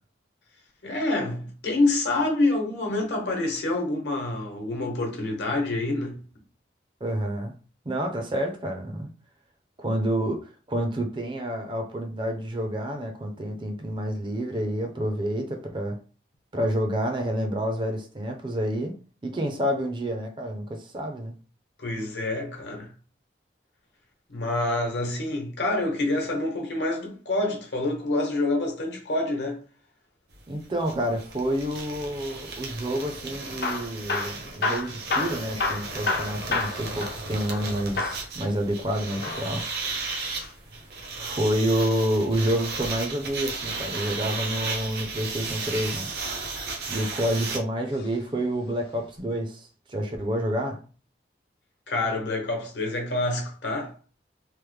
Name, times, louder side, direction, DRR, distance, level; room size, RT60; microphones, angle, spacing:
voice 1, 0.8-6.2 21.8-22.9 24.3-29.6 51.9-53.9, left 2 dB, 80° left, 1.0 m, -27 dB
voice 2, 7.0-7.5 7.9-9.1 9.8-16.0 16.5-18.9 19.2-21.3 30.5-39.7 41.2-46.1 46.9-50.8, equal, 25° right, 0.5 m, -28 dB
sound 1, 30.3-30.4 30.6-47.6, right 3 dB, 65° right, 0.7 m, -35 dB
Hammer / Drill, 33.5-37.7 38.0-38.3 39.1-40.5 42.3-43.5 45.2-45.7 46.4-47.2 47.9-48.2 48.5-48.6 49.2-49.3, left 3 dB, 60° left, 0.5 m, -31 dB
3.1 x 2.1 x 3.2 m
head